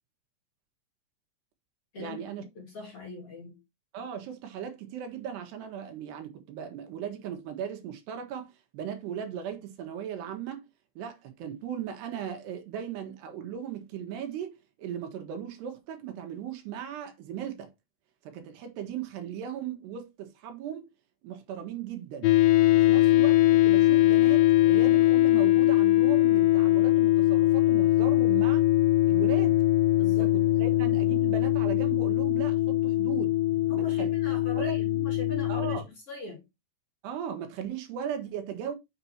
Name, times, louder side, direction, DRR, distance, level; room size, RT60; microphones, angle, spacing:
voice 1, 2.0-2.4 3.9-10.7 11.0-17.7 18.2-20.9 21.2-22.4 22.7-28.7 29.1-29.6 30.2-33.4 33.7-34.1 34.5-34.8 35.5-35.9 37.0-38.8, right 9 dB, 80° right, 3.5 m, -37 dB
voice 2, 2.6-3.6 29.9-31.2 33.6-35.8 36.1-36.5, left 2 dB, 40° left, 2.7 m, -42 dB
sound 1, 22.2-35.8, left 15 dB, 75° left, 2.1 m, -22 dB
7.7 x 6.8 x 2.9 m
omnidirectional pair, 4.7 m